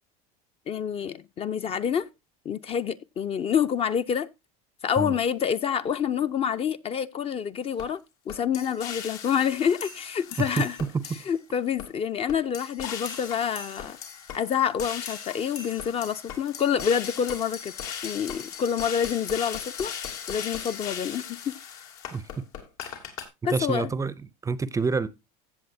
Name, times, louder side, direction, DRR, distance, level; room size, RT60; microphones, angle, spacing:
voice 1, 0.7-2.1 2.4-4.3 4.8-8.0 8.3-10.8 11.3-14.0 14.3-17.7 18.0-19.9 20.3-21.6 23.4-23.9, left 8 dB, 30° left, 0.6 m, -27 dB
sound 1, 7.8-7.9 8.3-11.4 11.8-11.9 12.3-23.2, left 8 dB, 80° left, 2.8 m, -38 dB
voice 2, 10.9-11.2 22.1-22.2 23.5-24.1 24.4-25.1, right 4 dB, 15° right, 0.6 m, -27 dB
15.5 x 7.3 x 2.7 m
supercardioid pair, 120°, 19 cm